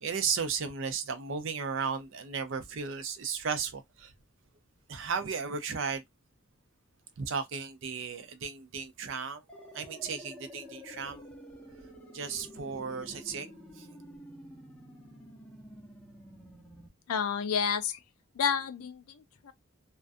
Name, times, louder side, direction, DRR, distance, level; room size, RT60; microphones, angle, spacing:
voice 1, 0.0-4.1 4.9-6.0 7.2-9.4 9.7-11.3 12.1-13.9, right 6 dB, 60° right, 0.5 m, -35 dB
sound 1, 9.5-16.9, equal, 5° left, 0.6 m, -49 dB
voice 2, 17.1-18.0 18.4-19.5, left 7 dB, 85° left, 0.4 m, -30 dB
2.4 x 2.1 x 2.4 m
head